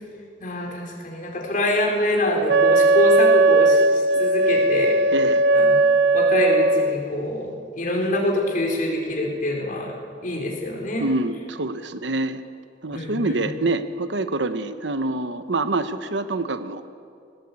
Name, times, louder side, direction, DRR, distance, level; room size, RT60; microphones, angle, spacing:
voice 1, 0.4-5.0 5.5-5.7 6.1-7.5 7.7-9.9 10.2-11.1 12.9-13.4, left 1 dB, 45° left, -1 dB, 4.2 m, -25 dB
Wind instrument woodwind instrument, 2.5-7.0, right 2 dB, 60° right, 0.5 m, -17 dB
voice 2, 5.1-5.4 11.0-12.4 12.8-16.8, right 2 dB, 90° right, 11 dB, 1.1 m, -26 dB
19.5 x 17.5 x 8.4 m, 2.4 s
head